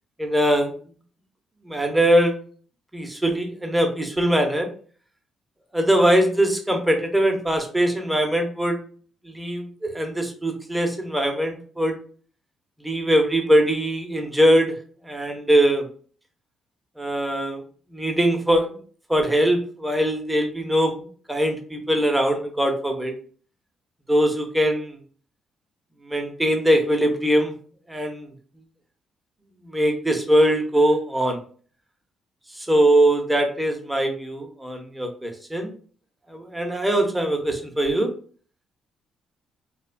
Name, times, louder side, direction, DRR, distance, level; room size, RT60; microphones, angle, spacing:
voice 1, 0.2-0.7 1.6-2.4 2.9-4.7 5.7-8.8 9.2-12.0 12.8-14.8 15.0-15.9 17.0-17.6 17.9-18.8 19.1-21.0 21.3-23.1 24.1-25.0 26.0-27.5 27.9-28.3 29.6-31.4 32.5-35.7 36.3-38.1, right 1 dB, 10° right, 3 dB, 0.6 m, -21 dB
2.8 x 2.1 x 2.5 m, 0.44 s
cardioid pair, 90°, 0 cm